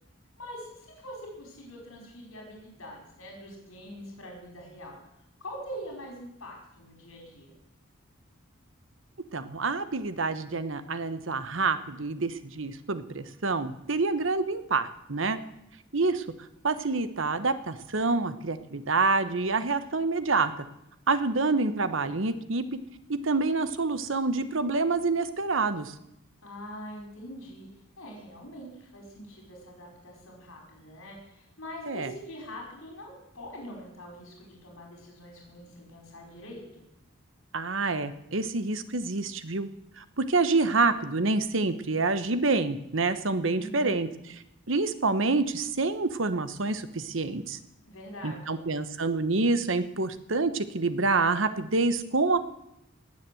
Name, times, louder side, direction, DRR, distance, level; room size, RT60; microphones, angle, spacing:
voice 1, 0.4-5.0 5.4-7.5 26.4-27.7 28.0-36.6 43.6-44.1 47.8-48.6, equal, 85° left, -1 dB, 5.0 m, -43 dB
voice 2, 9.3-15.4 15.9-16.2 16.6-20.6 21.1-22.6 23.1-25.9 31.9-32.1 37.5-39.7 40.2-44.1 44.7-47.6 48.2-52.4, right 3 dB, 70° right, 12 dB, 1.1 m, -27 dB
18.5 x 7.6 x 7.8 m, 0.83 s
head